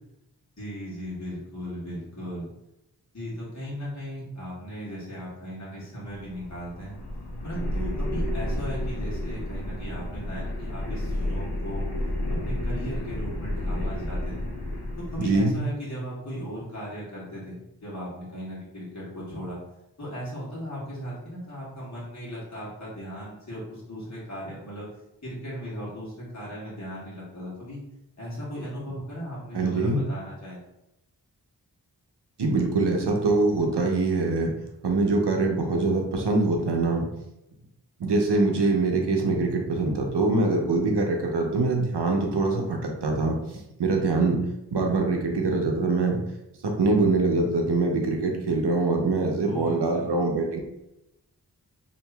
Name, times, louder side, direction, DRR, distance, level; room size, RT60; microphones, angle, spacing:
voice 1, 0.6-2.5 3.1-7.0 7.4-11.9 12.3-14.5 15.1-19.6 20.0-24.9 25.2-27.8 28.2-30.6 49.4-50.1, equal, 40° left, -8 dB, 1.5 m, -37 dB
sound 1, 6.0-15.6, left 1 dB, 75° left, 0.8 m, -31 dB
voice 2, 15.2-15.5 29.5-30.0 32.4-34.5 34.8-37.0 38.0-43.4 43.8-44.4 44.7-46.2 46.6-50.6, right 3 dB, 85° right, 1 dB, 0.7 m, -23 dB
2.9 x 2.6 x 3.3 m, 0.88 s
wide cardioid pair, 55°, 40 cm